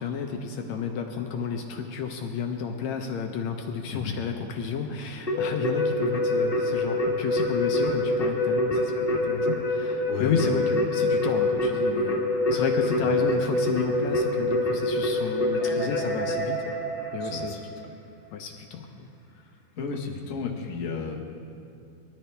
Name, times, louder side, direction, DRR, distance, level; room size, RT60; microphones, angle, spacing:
voice 1, 0.0-12.2 12.5-16.6 17.1-17.6 18.3-19.1, left 6 dB, 75° left, 3 dB, 1.9 m, -31 dB
Keyboard (musical), 5.3-17.7, left 1 dB, 25° left, 1.4 m, -26 dB
voice 2, 10.1-10.5 13.0-13.1 17.2-17.9 19.8-21.3, left 5 dB, 40° left, -1 dB, 1.2 m, -34 dB
21.0 x 13.5 x 3.4 m, 2.5 s
omnidirectional pair, 3.5 m